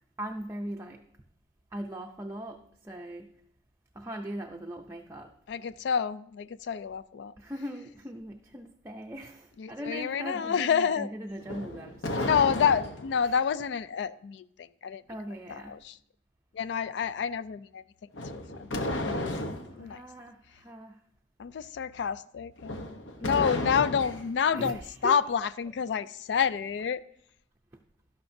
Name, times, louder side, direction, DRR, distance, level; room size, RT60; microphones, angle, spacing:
voice 1, 0.2-1.0 1.7-3.3 3.9-5.3 7.4-12.3 13.2-13.4 15.1-15.8 19.7-21.0 23.2-23.6 24.5-25.2, right 1 dB, 15° right, 0.5 m, -40 dB
voice 2, 5.5-7.3 9.6-11.1 12.2-15.0 15.5-16.0 16.5-17.8 18.3-20.0 21.4-27.0, left 7 dB, 65° left, 0.3 m, -29 dB
sound 1, 11.4-13.2 18.1-19.7 22.6-24.3, left 1 dB, 85° left, 1.0 m, -33 dB
12.0 x 11.5 x 2.7 m
head